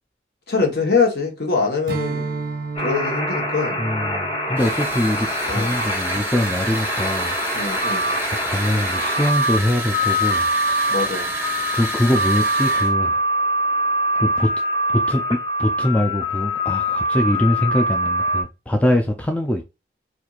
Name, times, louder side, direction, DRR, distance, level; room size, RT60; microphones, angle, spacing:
voice 1, 0.5-2.2 2.8-3.8 5.5-5.7 7.5-8.1 10.9-11.3, left 4 dB, 60° left, 1.1 m, -23 dB
Strum, 1.8-6.5, right 4 dB, 50° right, 0.5 m, -33 dB
sound 1, 2.8-18.4, equal, 30° left, 1.2 m, -24 dB
voice 2, 3.8-7.4 8.4-10.5 11.7-13.2 14.2-14.5 14.9-15.2 15.6-19.6, left 1 dB, 10° left, 0.3 m, -22 dB
sound 2, 4.6-12.9, right 2 dB, 10° right, 0.7 m, -29 dB
4.4 x 2.5 x 2.4 m
head